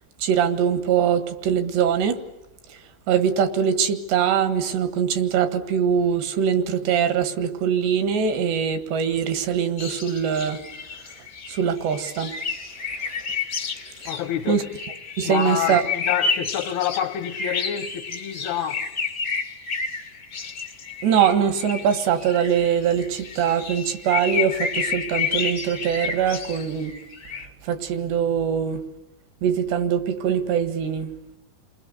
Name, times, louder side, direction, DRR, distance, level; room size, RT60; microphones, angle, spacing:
voice 1, 0.2-2.2 2.7-10.6 11.5-12.3 13.0-13.1 14.0-14.1 14.5-14.6 15.2-15.8 21.0-27.0 27.6-28.8 29.4-31.1, right 8 dB, 75° right, 3.8 m, -22 dB
sound 1, 9.8-27.5, left 5 dB, 45° left, 1.4 m, -31 dB
voice 2, 14.1-14.6 15.2-18.9, left 10 dB, 70° left, 3.1 m, -27 dB
29.0 x 21.0 x 8.2 m
omnidirectional pair, 5.0 m